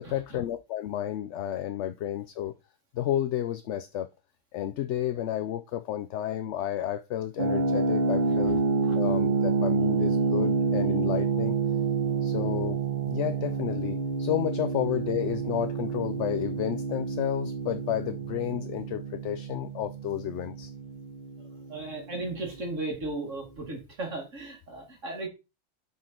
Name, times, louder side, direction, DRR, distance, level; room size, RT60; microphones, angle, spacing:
voice 1, 0.0-2.5 2.9-4.1 4.5-8.6 9.0-11.5 12.2-12.8 13.1-20.7, left 11 dB, 70° left, 0.8 m, -31 dB
sound 1, 7.4-22.1, right 4 dB, 40° right, 0.9 m, -28 dB
voice 2, 21.7-25.3, right 2 dB, 70° right, 2.9 m, -35 dB
6.3 x 5.6 x 4.4 m
omnidirectional pair, 1.4 m